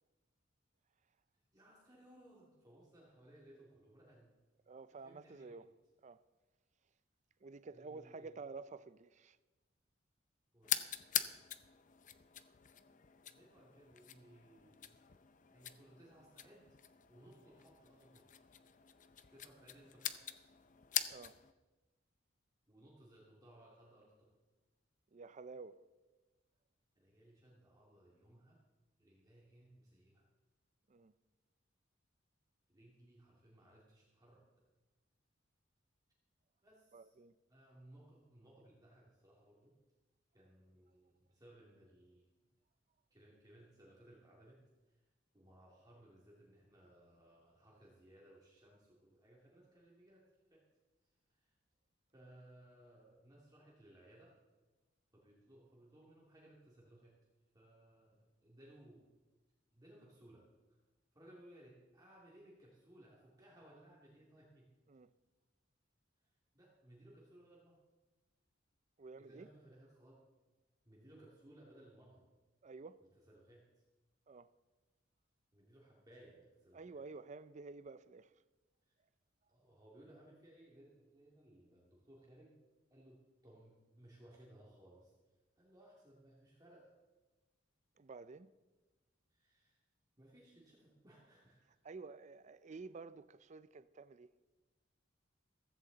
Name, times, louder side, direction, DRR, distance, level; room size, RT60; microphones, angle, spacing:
voice 1, 1.5-4.3 4.9-5.6 7.7-8.3 10.5-11.3 13.3-14.9 15.5-16.8 17.1-18.5 19.3-20.5 22.7-24.4 26.9-28.6 29.0-30.2 32.7-34.4 36.6-37.1 37.5-39.8 40.3-42.3 43.1-45.0 45.3-50.2 50.5-50.7 51.0-51.6 52.1-54.3 55.1-57.1 57.5-59.1 59.7-60.8 61.1-64.7 66.2-67.8 69.2-70.2 70.8-72.2 73.3-73.8 75.5-76.9 78.9-79.0 79.5-82.5 82.9-85.1 85.6-87.0 89.3-89.8 90.2-91.8, right 1 dB, 20° right, 2.4 m, -62 dB
voice 2, 4.7-5.7 6.0-6.2 7.4-9.4 21.1-21.4 25.1-25.8 30.9-31.1 36.9-37.3 64.9-65.1 69.0-69.5 72.6-73.0 74.3-74.5 76.7-78.3 88.0-88.5 91.8-94.3, right 4 dB, 35° right, 0.5 m, -51 dB
sound 1, 10.6-21.5, left 10 dB, 40° left, 0.6 m, -44 dB
15.0 x 15.0 x 4.0 m
head